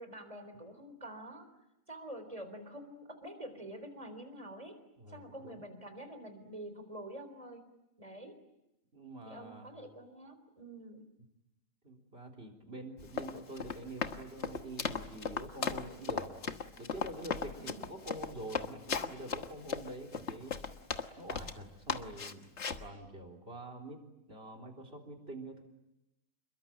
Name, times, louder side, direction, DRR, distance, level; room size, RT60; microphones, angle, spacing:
voice 1, 0.0-1.5 1.9-4.8 5.1-7.6 8.0-8.4 9.3-11.0 17.6-17.9, right 1 dB, 25° right, 8 dB, 3.9 m, -47 dB
voice 2, 5.0-5.6 8.9-9.7 11.8-16.3 16.8-20.6 21.2-22.5 22.8-25.6, right 2 dB, 45° right, 7 dB, 4.0 m, -46 dB
Run, 13.0-21.6 21.9-22.9, left 6 dB, 50° left, 1.6 m, -37 dB
28.0 x 22.5 x 8.9 m, 0.90 s
omnidirectional pair, 1.5 m